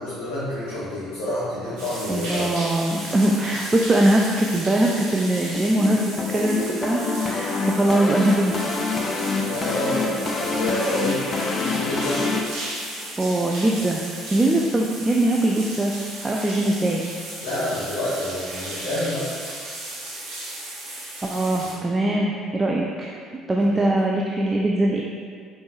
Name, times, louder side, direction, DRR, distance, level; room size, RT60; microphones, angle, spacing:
voice 1, 0.0-2.5 9.4-12.2 17.4-19.3 21.6-21.7 23.6-23.9, left 1 dB, 65° left, -10 dB, 0.9 m, -28 dB
sound 1, 1.8-21.7, right 1 dB, 60° right, 1.1 m, -35 dB
voice 2, 2.1-8.5 13.2-14.0 14.3-15.9 16.2-17.0 21.2-23.2 23.5-25.0, right 1 dB, 20° right, -1 dB, 0.3 m, -21 dB
sound 2, 5.5-12.4, left 3 dB, 35° left, 0.5 m, -26 dB
5.2 x 3.1 x 2.4 m, 2.2 s
figure-of-eight pair, 55°, 0 cm